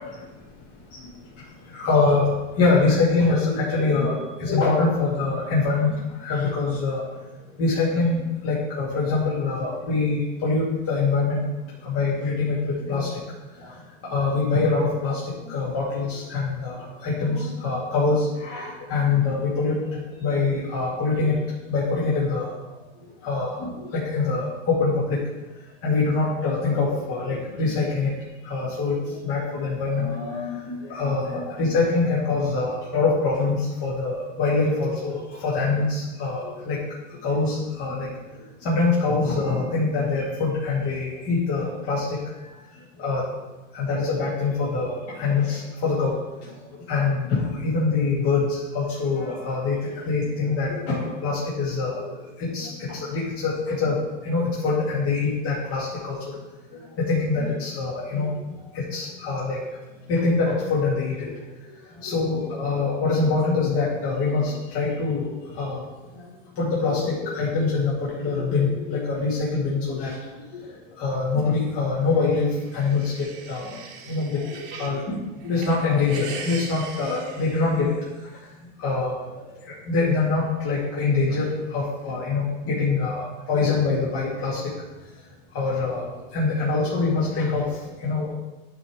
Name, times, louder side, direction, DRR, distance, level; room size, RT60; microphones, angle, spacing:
voice 1, 1.7-2.3 2.6-5.9 6.2-7.0 7.6-11.4 11.8-13.2 13.6-13.7 14.0-22.5 23.2-25.2 25.8-28.1 28.4-36.8 37.2-38.1 38.6-42.2 43.0-43.2 43.7-46.1 46.4-46.5 46.9-56.3 56.7-58.3 58.7-59.6 60.1-61.3 62.0-65.8 66.1-66.3 66.6-70.1 70.5-70.6 71.0-73.8 74.1-77.9 78.8-79.5 79.9-83.2 83.5-84.7 85.5-86.0 86.3-88.3, left 3 dB, 35° left, -8 dB, 2.2 m, -24 dB
sound 1, 72.3-75.0 75.4-78.3, right 5 dB, 45° right, 1.3 m, -40 dB
9.6 x 3.6 x 4.8 m, 1.1 s
hypercardioid pair, 120°, 37 cm